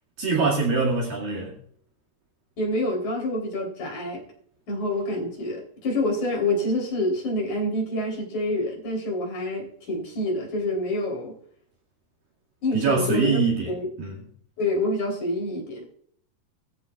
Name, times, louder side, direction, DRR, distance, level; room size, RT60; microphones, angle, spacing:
voice 1, 0.2-1.5 12.7-14.2, right 4 dB, 65° right, 3.8 m, -24 dB
voice 2, 2.6-4.2 4.7-11.4 12.6-13.4 13.7-13.9 14.6-15.9, left 1 dB, 50° left, 5.0 m, -27 dB
21.5 x 14.5 x 2.4 m
omnidirectional pair, 4.5 m